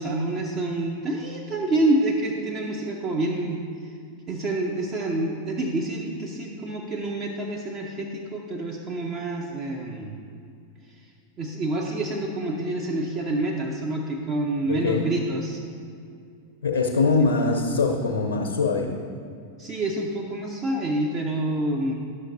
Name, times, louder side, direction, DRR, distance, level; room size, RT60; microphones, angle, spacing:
voice 1, 0.0-3.9 4.3-10.1 11.4-15.6 19.6-21.9, right 2 dB, 30° right, -1 dB, 0.7 m, -27 dB
voice 2, 14.6-15.1 16.6-18.9, left 3 dB, 65° left, 1 dB, 0.7 m, -23 dB
11.5 x 6.4 x 2.6 m, 2.4 s
figure-of-eight pair, 90°, 0 cm